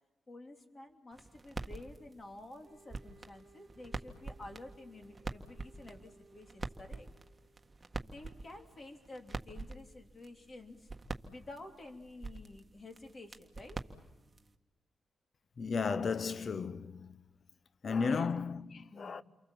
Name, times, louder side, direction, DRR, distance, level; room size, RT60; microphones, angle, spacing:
voice 1, 0.3-7.1 8.0-10.9 11.2-13.8 18.0-18.3 18.9-19.2, left 2 dB, 40° left, 3.2 m, -51 dB
sound 1, 1.1-14.5, right 3 dB, 25° right, 1.6 m, -46 dB
Wind instrument woodwind instrument, 2.6-7.8, right 3 dB, 50° right, 1.7 m, -62 dB
voice 2, 15.6-17.2 17.8-19.2, left 5 dB, 55° left, 0.8 m, -34 dB
29.5 x 23.5 x 7.4 m
cardioid pair, 60°, 0 cm